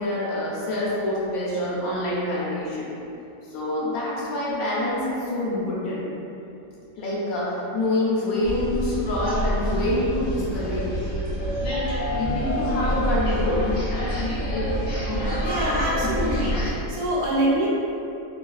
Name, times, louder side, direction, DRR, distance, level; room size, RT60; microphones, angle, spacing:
voice 1, 0.0-2.9 3.5-6.0 7.0-10.9 12.1-13.7 14.5-14.7 15.1-15.2, left 1 dB, 75° left, -7 dB, 1.2 m, -26 dB
sound 1, 8.4-16.7, equal, 60° left, 0.6 m, -26 dB
voice 2, 15.4-16.5 16.9-17.7, right 1 dB, 85° right, -5 dB, 1.2 m, -24 dB
3.1 x 2.4 x 2.3 m, 2.8 s
omnidirectional pair, 1.5 m